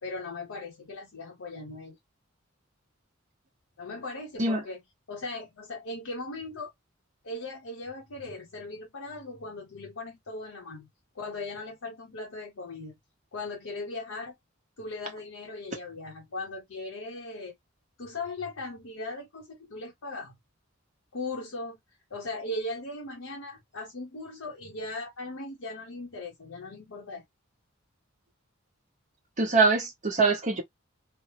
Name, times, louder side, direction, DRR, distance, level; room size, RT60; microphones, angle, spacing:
voice 1, 0.0-2.0 3.8-4.8 5.1-6.7 7.2-10.9 11.1-12.9 13.3-14.3 14.8-17.6 18.0-20.4 21.1-21.8 22.1-27.2, left 2 dB, 80° left, 0.8 m, -38 dB
voice 2, 29.4-30.6, right 3 dB, 35° right, 0.8 m, -23 dB
3.2 x 2.0 x 2.9 m
head